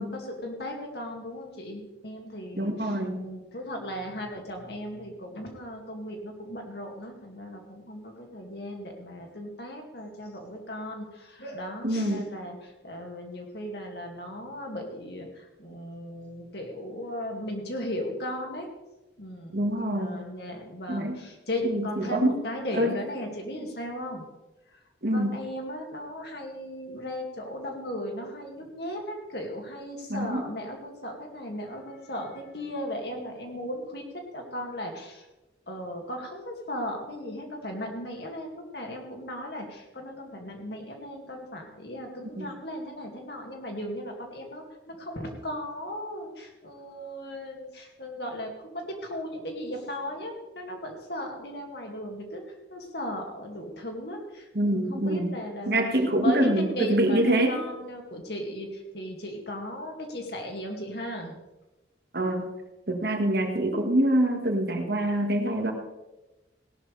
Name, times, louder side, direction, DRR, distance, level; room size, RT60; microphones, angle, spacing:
voice 1, 0.0-18.7 19.2-24.2 24.7-24.8 25.1-35.3 35.7-61.4, equal, 60° left, 2 dB, 2.4 m, -36 dB
voice 2, 2.6-3.2 11.8-12.3 19.5-20.3 20.9-21.2 21.6-22.3 22.7-22.9 25.0-25.4 30.1-30.4 42.4-42.5 54.6-55.3 55.7-57.5 62.1-62.5 62.9-65.7, right 1 dB, 55° right, 4 dB, 1.8 m, -25 dB
17.0 x 12.0 x 3.4 m, 1.0 s
head